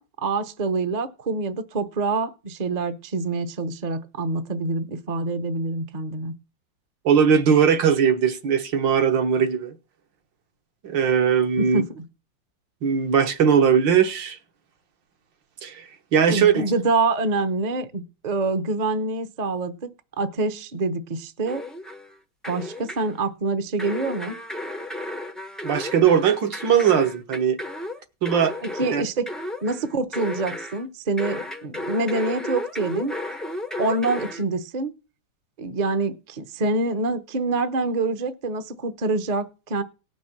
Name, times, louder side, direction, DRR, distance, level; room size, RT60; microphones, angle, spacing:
voice 1, 0.0-6.3 11.6-12.0 16.3-19.9 20.2-21.6 22.5-24.4 28.6-29.3 29.6-33.1 33.8-34.9 35.6-39.8, right 3 dB, 35° right, 0.7 m, -26 dB
voice 2, 7.1-9.8 10.8-11.8 12.8-14.4 15.6-15.9 16.1-16.7 25.6-27.6 28.2-28.5 28.9-29.0, right 7 dB, 70° right, 1.9 m, -19 dB
sound 1, 21.5-22.1 22.4-23.2 23.8-30.8 31.2-34.4, left 1 dB, ahead, 0.4 m, -34 dB
18.0 x 6.0 x 6.0 m
omnidirectional pair, 2.2 m